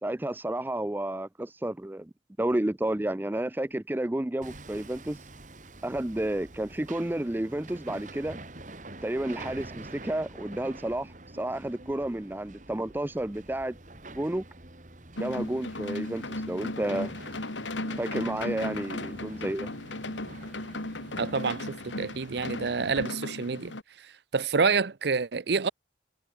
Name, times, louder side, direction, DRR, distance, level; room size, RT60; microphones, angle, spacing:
voice 1, 0.0-2.1 2.4-5.2 5.8-8.4 9.0-13.8 14.1-14.4 15.2-17.1 18.0-19.7, right 1 dB, 10° right, 0.4 m, -31 dB
Hammer, 4.4-23.0, right 2 dB, 40° right, 2.4 m, -47 dB
sound 1, 15.2-23.8, left 2 dB, 85° left, 3.0 m, -36 dB
voice 2, 21.2-25.7, right 5 dB, 65° right, 0.7 m, -28 dB
head